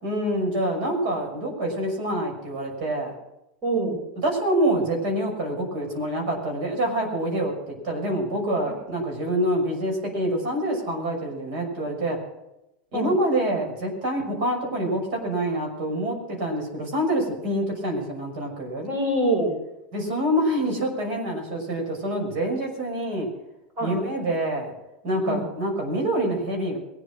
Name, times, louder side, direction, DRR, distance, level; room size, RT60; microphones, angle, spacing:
voice 1, 0.0-3.1 4.2-12.2 12.9-18.9 19.9-23.3 23.8-24.7 25.0-26.8, right 1 dB, 65° right, 1 dB, 6.1 m, -26 dB
voice 2, 3.6-4.1 8.7-9.0 12.9-13.1 18.8-19.5 23.8-24.0 25.2-25.5, right 1 dB, 35° right, 1 dB, 5.6 m, -25 dB
22.0 x 8.5 x 6.1 m, 0.89 s
supercardioid pair, 130°, 5 cm